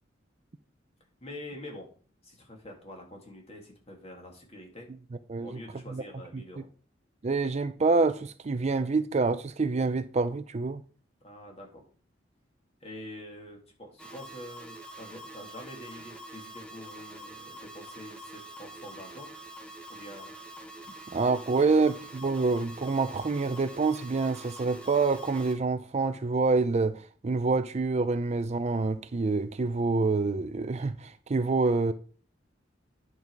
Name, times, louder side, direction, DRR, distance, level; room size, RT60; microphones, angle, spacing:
voice 1, 1.2-1.9 2.2-4.9 5.4-6.7 11.2-11.8 12.8-19.3 19.9-20.4 21.6-21.8, left 1 dB, 35° left, 2.3 m, -46 dB
voice 2, 7.2-10.8 21.1-31.9, right 3 dB, 35° right, 0.4 m, -27 dB
sound 1, 14.0-25.5, right 1 dB, 5° left, 1.1 m, -45 dB
9.7 x 5.4 x 4.6 m
head